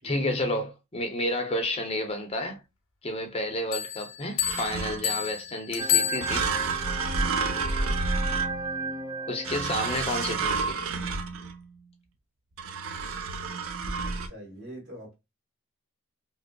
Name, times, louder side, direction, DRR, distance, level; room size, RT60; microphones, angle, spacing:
voice 1, 0.0-2.6 3.0-6.5 9.3-10.8, left 1 dB, 30° left, 0.6 m, -30 dB
Bell, 3.7-6.8, left 9 dB, 75° left, 0.7 m, -30 dB
sound 1, 4.4-5.2 6.2-8.9 9.4-11.7 12.6-14.3, right 4 dB, 70° right, 0.6 m, -30 dB
sound 2, 5.8-10.2, right 4 dB, 15° right, 0.4 m, -33 dB
voice 2, 14.0-15.1, right 1 dB, 55° right, 1.9 m, -44 dB
5.0 x 2.0 x 2.2 m
head